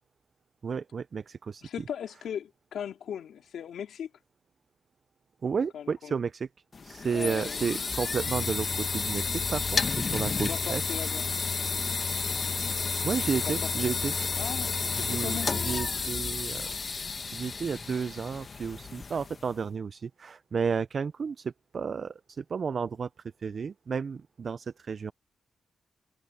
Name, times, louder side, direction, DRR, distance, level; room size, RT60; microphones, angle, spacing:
voice 1, 0.6-1.7 5.4-6.5 6.8-10.9 13.0-14.4 15.0-16.7 17.3-23.1 23.4-25.1, right 6 dB, 60° right, 0.6 m, -32 dB
voice 2, 1.6-4.1 5.7-6.1 7.1-7.6 10.4-11.2 13.4-13.7 14.4-15.5, left 9 dB, 80° left, 2.7 m, -38 dB
sound 1, 6.7-19.5, left 4 dB, 50° left, 1.4 m, -31 dB
supercardioid pair, 55°, 0 cm